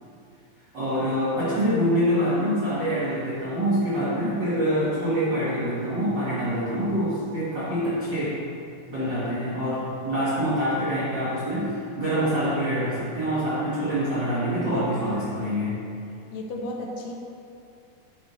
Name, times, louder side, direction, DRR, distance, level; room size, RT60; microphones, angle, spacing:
voice 1, 0.7-8.4 8.9-15.8, equal, 70° right, -11 dB, 1.0 m, -25 dB
voice 2, 16.3-17.1, left 1 dB, 80° left, 0 dB, 2.2 m, -33 dB
9.9 x 4.0 x 3.0 m, 2.5 s
omnidirectional pair, 4.1 m